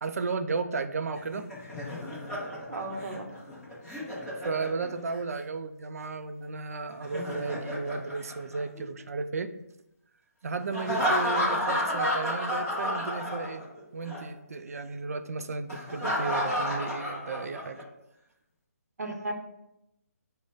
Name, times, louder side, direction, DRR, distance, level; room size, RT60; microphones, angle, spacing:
voice 1, 0.0-1.5 4.4-9.5 10.4-13.6 13.9-17.8, right 4 dB, 70° right, 9 dB, 0.4 m, -34 dB
Laughter, 1.1-5.2 6.9-9.0 10.7-13.8 14.1-14.2 15.7-17.8, left 1 dB, 5° left, 0.7 m, -31 dB
voice 2, 2.7-3.3 11.3-11.5 19.0-19.3, right 2 dB, 85° right, 4 dB, 0.8 m, -35 dB
4.9 x 2.1 x 3.9 m, 0.86 s
hypercardioid pair, 170°, 9 cm